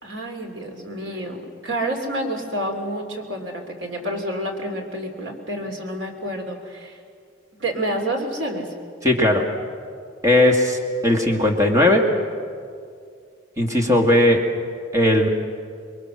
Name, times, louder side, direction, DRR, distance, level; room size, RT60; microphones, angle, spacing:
voice 1, 0.0-7.0 7.6-8.7, right 1 dB, 80° right, 3 dB, 3.3 m, -29 dB
voice 2, 9.0-9.4 10.2-12.1 13.6-14.5 14.9-15.3, left 1 dB, 15° right, 1 dB, 2.3 m, -17 dB
26.5 x 22.5 x 6.5 m, 2.2 s
head